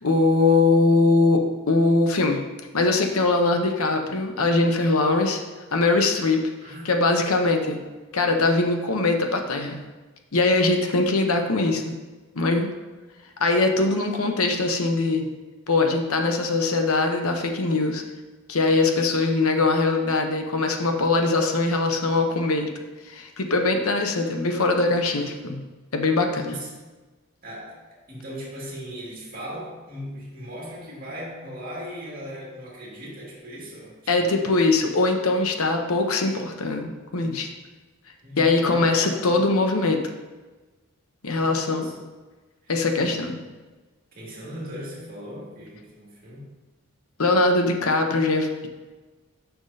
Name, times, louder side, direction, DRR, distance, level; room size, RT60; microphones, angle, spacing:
voice 1, 0.0-2.4 2.7-5.4 5.7-6.5 6.8-7.8 8.1-9.8 10.3-11.9 12.3-12.7 13.4-15.3 15.7-18.0 18.5-22.7 23.1-25.6 25.9-26.5 34.1-37.5 38.4-40.0 41.2-41.9 42.7-43.4 47.2-48.7, left 3 dB, 75° left, 4 dB, 0.9 m, -22 dB
voice 2, 6.6-6.9 26.4-26.7 27.4-27.8 28.1-34.7 38.2-39.4 41.4-42.1 42.6-43.4 44.1-46.5, equal, 40° right, -5 dB, 2.1 m, -38 dB
9.6 x 6.0 x 2.8 m, 1.2 s
head